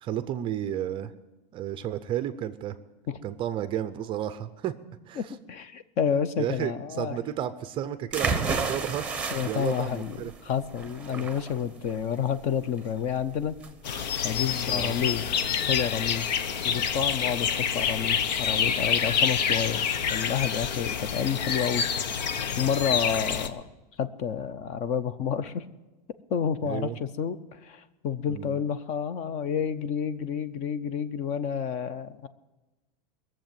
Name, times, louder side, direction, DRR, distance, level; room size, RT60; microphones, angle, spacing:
voice 1, 0.0-1.1 1.5-2.8 3.2-4.7 5.1-5.3 6.4-9.1 9.4-10.3 11.0-11.3 14.7-14.9 26.6-26.9 28.3-28.6, right 11 dB, 25° right, 12 dB, 0.5 m, -32 dB
voice 2, 5.2-7.2 9.3-13.5 14.2-15.2 15.7-16.3 16.6-17.5 17.7-19.8 20.1-22.2 22.6-23.6 24.0-25.6 26.3-32.3, left 7 dB, 35° left, 14 dB, 0.6 m, -29 dB
sound 1, 8.1-15.8, right 4 dB, 5° right, 1.0 m, -33 dB
sound 2, 13.8-23.5, left 7 dB, 90° left, 1.0 m, -27 dB
20.5 x 7.5 x 9.1 m, 1.1 s
supercardioid pair, 165°, 21 cm